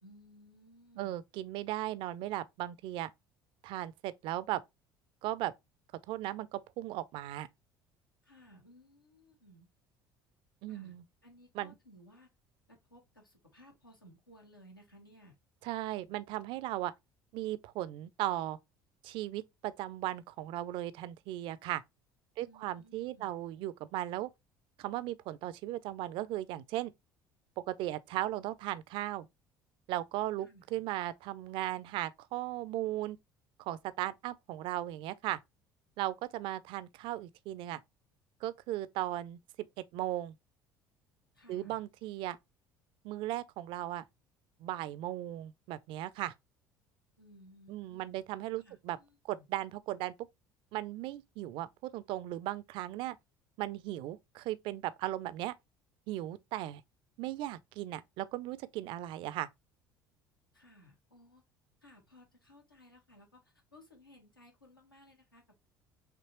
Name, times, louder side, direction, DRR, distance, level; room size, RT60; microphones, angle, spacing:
voice 1, 0.0-1.2 8.2-9.7 10.7-10.9 11.2-12.3 12.7-15.3 22.4-23.3 30.4-30.6 41.3-41.8 47.2-48.2 48.5-49.5 60.5-61.4 61.8-65.7, equal, 85° left, 1.1 m, -59 dB
voice 2, 1.0-3.1 3.6-4.6 5.2-5.5 6.1-7.5 10.6-11.0 11.6-11.7 15.6-16.9 17.3-18.6 19.0-21.8 22.4-24.3 24.8-26.9 27.7-29.3 29.9-33.2 33.6-35.4 36.0-37.8 38.4-39.7 39.9-40.3 41.5-42.4 43.0-44.0 44.6-46.3 47.7-49.0 49.3-50.1 50.7-53.2 53.6-55.6 56.1-56.8 57.2-59.5, right 15 dB, 50° right, 0.4 m, -37 dB
5.9 x 2.9 x 2.9 m
figure-of-eight pair, 60°, 11 cm